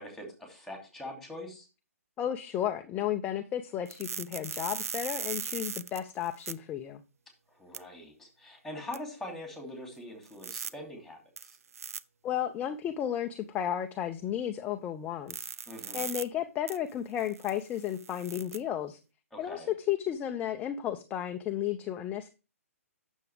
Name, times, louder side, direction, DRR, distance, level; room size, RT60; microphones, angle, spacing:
voice 1, 0.0-1.7 7.5-11.6 15.7-16.1 19.3-19.7, left 1 dB, 5° left, 2.9 m, -43 dB
voice 2, 2.2-7.0 12.2-15.5 15.9-19.0 19.4-22.3, left 10 dB, 20° left, 0.6 m, -33 dB
sound 1, 3.9-6.5 7.7-7.8 8.9-9.0 10.3-10.7 11.4-12.0 15.3-16.2 16.7-16.8 17.2-18.6, right 6 dB, 75° right, 0.6 m, -38 dB
9.1 x 7.1 x 3.4 m
hypercardioid pair, 135°, 8 cm